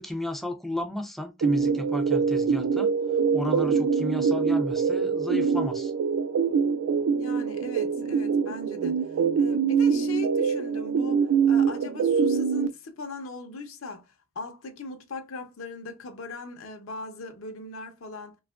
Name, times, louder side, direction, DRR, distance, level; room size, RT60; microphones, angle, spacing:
voice 1, 0.0-2.9 3.3-5.9, left 1 dB, ahead, 0.3 m, -33 dB
sound 1, 1.4-12.7, right 6 dB, 85° right, 0.3 m, -24 dB
voice 2, 7.2-18.4, left 3 dB, 85° left, 0.6 m, -39 dB
2.8 x 2.3 x 2.2 m
head